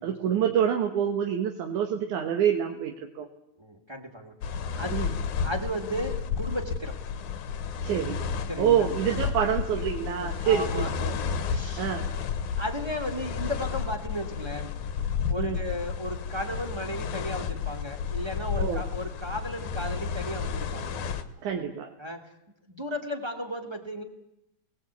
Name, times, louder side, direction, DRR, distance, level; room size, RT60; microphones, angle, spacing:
voice 1, 0.0-3.3 4.9-5.1 7.8-8.2 8.6-10.9 11.8-12.1 15.4-15.6 18.6-18.9 21.4-21.9, right 8 dB, 65° right, 3 dB, 2.6 m, -26 dB
voice 2, 3.6-5.0 5.4-7.0 8.5-8.9 10.2-12.0 12.6-14.7 15.3-21.0 22.0-22.2 22.7-24.0, left 1 dB, 10° right, 2 dB, 1.9 m, -35 dB
sound 1, 4.4-21.2, left 6 dB, 65° left, 2.5 m, -32 dB
25.0 x 19.5 x 8.4 m, 0.86 s
omnidirectional pair, 4.0 m